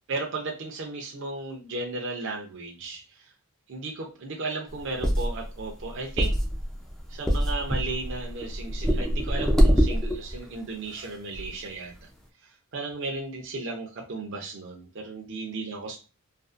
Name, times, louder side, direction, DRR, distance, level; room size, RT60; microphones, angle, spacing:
voice 1, 0.1-3.0 3.7-6.3 7.1-11.9 12.7-16.0, right 3 dB, 55° right, 0 dB, 0.5 m, -35 dB
sound 1, 4.7-10.4 11.0-11.1 11.3-11.5, equal, ahead, 0.3 m, -24 dB
2.5 x 2.4 x 2.4 m, 0.33 s
head